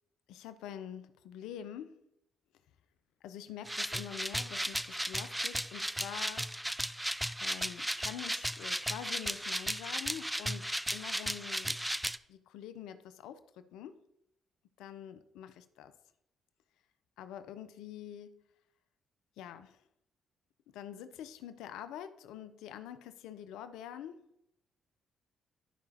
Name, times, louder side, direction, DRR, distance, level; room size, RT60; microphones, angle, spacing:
voice 1, 0.3-2.0 3.2-6.5 7.4-11.8 12.3-14.0 14.8-15.9 17.2-18.4 19.4-19.8 20.7-24.2, left 10 dB, 80° left, 12 dB, 0.5 m, -46 dB
sound 1, 3.7-12.2, equal, 5° right, 0.4 m, -35 dB
12.0 x 4.9 x 2.8 m, 0.79 s
hypercardioid pair, 50°, 0 cm